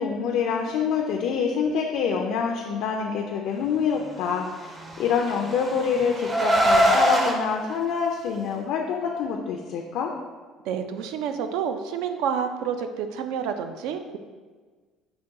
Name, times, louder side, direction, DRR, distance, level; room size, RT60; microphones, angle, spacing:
voice 1, 0.0-10.1, left 6 dB, 65° left, 1 dB, 0.4 m, -26 dB
Car, 4.8-7.3, right 1 dB, 15° right, 0.5 m, -22 dB
voice 2, 10.7-14.2, right 7 dB, 80° right, 8 dB, 0.3 m, -29 dB
5.7 x 2.2 x 3.7 m, 1.4 s
cardioid pair, 145°, 0 cm